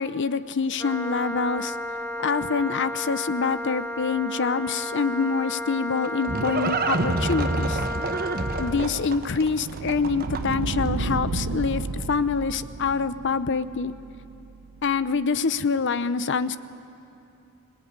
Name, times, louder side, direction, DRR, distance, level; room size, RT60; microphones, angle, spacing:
voice 1, 0.0-1.7 2.2-7.8 8.6-13.9 14.8-16.6, left 5 dB, 60° left, 14 dB, 0.7 m, -26 dB
Wind instrument woodwind instrument, 0.8-8.8, left 1 dB, 10° left, 1.5 m, -33 dB
Livestock farm animals working animals, 5.6-10.7, right 2 dB, 45° right, 1.1 m, -28 dB
sound 1, 8.6-15.0, right 3 dB, 65° right, 0.6 m, -33 dB
25.0 x 18.0 x 9.5 m, 2.8 s
head